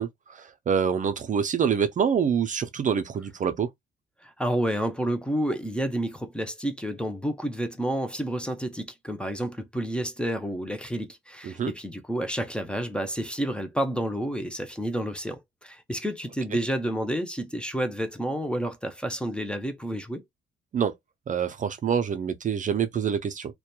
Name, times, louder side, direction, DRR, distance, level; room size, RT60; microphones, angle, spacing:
voice 1, 0.0-3.7 11.4-11.7 20.7-20.9 21.3-23.5, right 7 dB, 40° right, 0.4 m, -26 dB
voice 2, 4.2-20.2, equal, 5° left, 0.5 m, -30 dB
2.8 x 2.2 x 2.2 m
cardioid pair, 90°, 20 cm